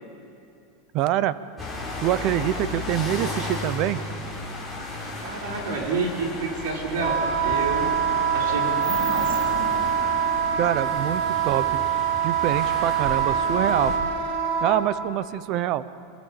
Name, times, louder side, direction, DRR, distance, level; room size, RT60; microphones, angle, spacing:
voice 1, 0.9-1.4 2.0-4.0 10.6-11.9 12.2-13.9 14.6-15.8, right 13 dB, 35° right, 16 dB, 0.6 m, -25 dB
sound 1, 1.6-14.0, left 2 dB, 5° right, 3.7 m, -34 dB
voice 2, 5.2-7.9 8.3-9.7, right 4 dB, 85° right, 0 dB, 4.3 m, -30 dB
Wind instrument woodwind instrument, 7.0-14.8, right 7 dB, 55° right, 3.3 m, -24 dB
26.0 x 20.5 x 7.3 m, 2.6 s
supercardioid pair, 180°, 0 cm